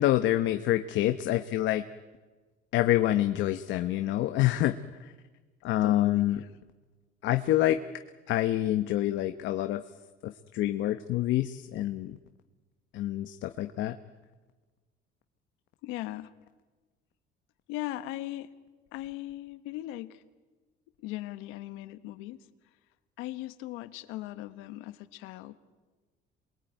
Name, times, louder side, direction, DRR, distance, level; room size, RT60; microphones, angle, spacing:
voice 1, 0.0-1.8 2.7-4.7 5.0-5.1 5.6-6.4 7.2-7.8 8.3-9.8 10.2-12.2 12.9-14.0, left 14 dB, 70° left, 8 dB, 1.1 m, -27 dB
voice 2, 5.8-6.5 15.8-16.3 17.7-18.5 18.9-20.2 21.0-22.4 23.2-25.5, left 16 dB, 90° left, 12 dB, 1.4 m, -38 dB
28.0 x 22.0 x 9.2 m, 1.3 s
cardioid pair, 110°, 20 cm